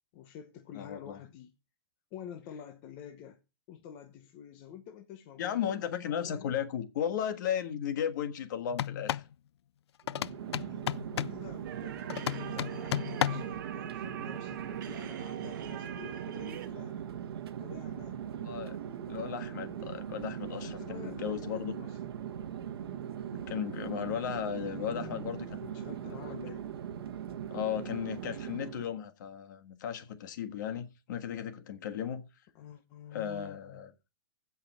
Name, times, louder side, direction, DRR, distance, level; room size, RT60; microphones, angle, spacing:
voice 1, 0.1-1.5 2.1-3.4 3.7-6.5 11.3-17.1 17.6-18.2 20.6-22.0 24.6-26.6 32.5-33.8, left 9 dB, 25° left, 0.8 m, -49 dB
voice 2, 0.7-1.2 5.4-9.2 10.7-11.0 18.3-18.8 19.1-21.8 23.5-25.7 26.2-26.4 27.5-32.2 33.1-33.9, left 9 dB, 45° left, 1.5 m, -35 dB
sound 1, 8.7-9.3 10.1-11.4 12.1-13.6, left 11 dB, 75° left, 0.4 m, -33 dB
Chatter / Fixed-wing aircraft airplane, 10.0-29.0, right 9 dB, 65° right, 1.2 m, -40 dB
sound 2, 11.6-16.7, right 10 dB, 45° right, 1.4 m, -44 dB
16.0 x 5.6 x 4.3 m
supercardioid pair, 180°, 14 cm